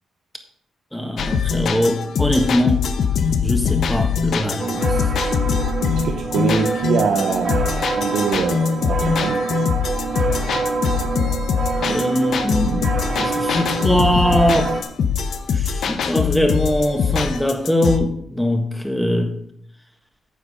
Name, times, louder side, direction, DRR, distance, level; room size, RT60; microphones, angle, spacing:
voice 1, 0.9-2.8 3.4-4.9 11.8-12.9 13.2-14.7 15.5-19.3, equal, 5° left, 4 dB, 1.6 m, -21 dB
sound 1, 1.2-18.0, left 6 dB, 65° left, 0.9 m, -22 dB
sound 2, 4.6-14.8, right 4 dB, 45° right, 1.7 m, -26 dB
voice 2, 6.0-9.4, right 5 dB, 70° right, 2 dB, 0.9 m, -23 dB
9.6 x 6.7 x 5.0 m, 0.65 s
cardioid pair, 90°, 0 cm